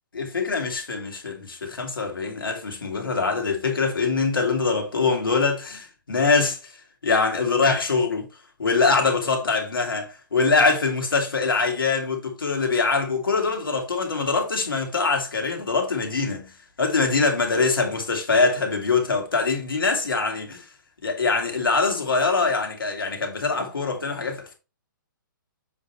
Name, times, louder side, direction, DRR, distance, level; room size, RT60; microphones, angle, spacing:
voice 1, 0.1-6.7 7.0-8.3 8.6-16.5 16.8-20.7 21.0-24.5, left 4 dB, 85° left, 2.2 m, -23 dB
7.2 x 4.9 x 3.0 m
hypercardioid pair, 135°, 11 cm